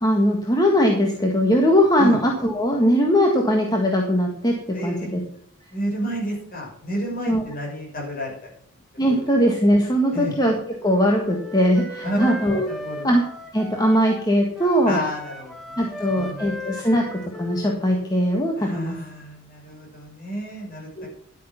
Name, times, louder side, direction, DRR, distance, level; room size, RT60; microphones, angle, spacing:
voice 1, 0.0-4.5 4.8-5.2 7.3-7.4 9.0-10.5 10.8-12.7 13.0-13.2 13.5-15.0 15.8-18.9 21.0-21.1, equal, 20° left, 1 dB, 1.6 m, -20 dB
voice 2, 4.7-5.1 5.7-8.3 9.0-9.1 10.1-10.3 12.0-12.4 12.7-13.1 14.8-16.5 18.6-20.9, equal, 45° left, -2 dB, 6.2 m, -30 dB
Wind instrument woodwind instrument, 10.8-14.3 14.5-18.1, left 1 dB, ahead, 1.5 m, -37 dB
11.5 x 8.7 x 5.8 m, 0.62 s
head